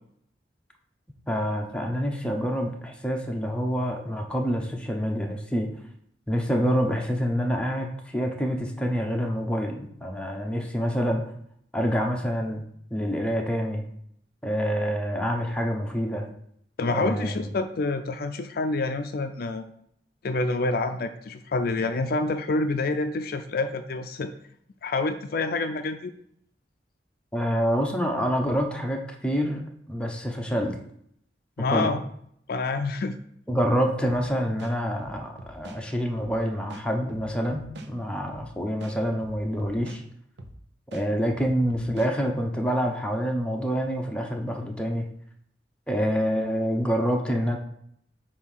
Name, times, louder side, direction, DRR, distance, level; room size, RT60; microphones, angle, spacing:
voice 1, 1.3-5.7 6.3-11.2 11.7-12.6 12.9-13.8 14.4-16.3 16.9-17.4 27.3-29.6 29.9-30.8 31.7-32.0 33.5-40.0 40.9-45.1 45.9-47.6, equal, 5° left, 1 dB, 0.9 m, -27 dB
voice 2, 16.8-19.6 20.2-24.3 24.8-26.1 31.6-32.0 32.5-33.1, left 3 dB, 60° left, 8 dB, 0.4 m, -27 dB
sound 1, 34.6-35.8 36.2-36.3 36.7-37.9 38.3-38.5 38.8-40.0 40.4-40.6 40.9-42.1, right 1 dB, 90° right, 0.8 m, -43 dB
7.9 x 2.8 x 5.7 m, 0.69 s
head